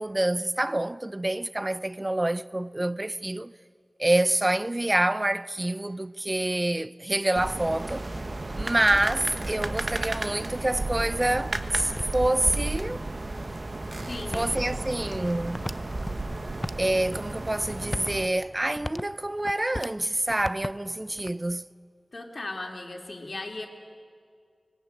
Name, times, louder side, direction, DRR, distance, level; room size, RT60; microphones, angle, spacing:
voice 1, 0.0-3.5 4.0-8.1 8.5-13.0 14.3-15.6 16.8-21.7, right 1 dB, 25° right, 0.6 m, -27 dB
sound 1, 7.4-18.3, right 2 dB, 50° right, 1.4 m, -33 dB
sound 2, 9.7-12.6 13.2-13.3 14.0-16.1 16.5-17.2 17.6-20.0 20.3-21.5, left 1 dB, 25° left, 0.6 m, -39 dB
voice 2, 14.1-14.6 22.1-23.7, left 2 dB, 60° left, 2.9 m, -37 dB
24.5 x 21.0 x 8.9 m
wide cardioid pair, 65°, 0 cm